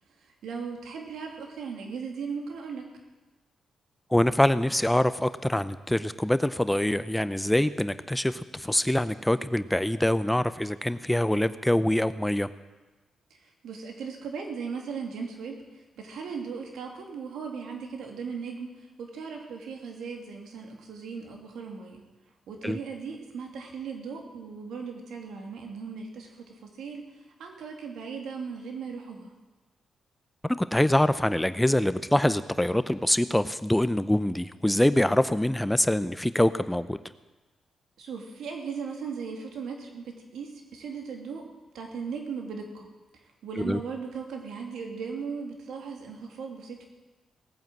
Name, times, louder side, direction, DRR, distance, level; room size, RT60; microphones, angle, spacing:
voice 1, 0.2-2.8 13.4-22.0 22.5-27.0 27.4-29.3 38.0-41.5 41.7-42.9 43.4-46.9, right 5 dB, 80° right, 2 dB, 2.5 m, -37 dB
voice 2, 4.1-12.5 22.6-22.8 30.4-37.0 43.6-43.8, left 1 dB, 10° left, 13 dB, 0.7 m, -24 dB
18.0 x 9.1 x 7.6 m, 1.2 s
supercardioid pair, 55°, 0 cm